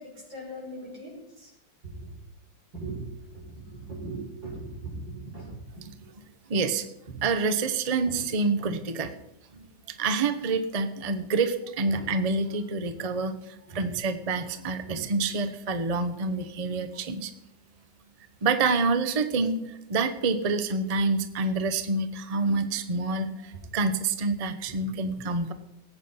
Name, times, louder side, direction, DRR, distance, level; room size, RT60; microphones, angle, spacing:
voice 1, 0.0-1.5 1.8-2.1 2.7-5.9 7.1-7.2 8.1-8.2 8.6-8.7 11.9-12.0 13.7-13.9 14.8-15.0, right 2 dB, 85° right, -3 dB, 6.4 m, -39 dB
voice 2, 6.5-6.9 7.2-9.1 9.5-9.7 10.0-13.4 13.7-17.3 18.4-25.5, right 3 dB, 30° right, 9 dB, 0.7 m, -27 dB
18.5 x 8.4 x 5.7 m, 0.85 s
omnidirectional pair, 2.0 m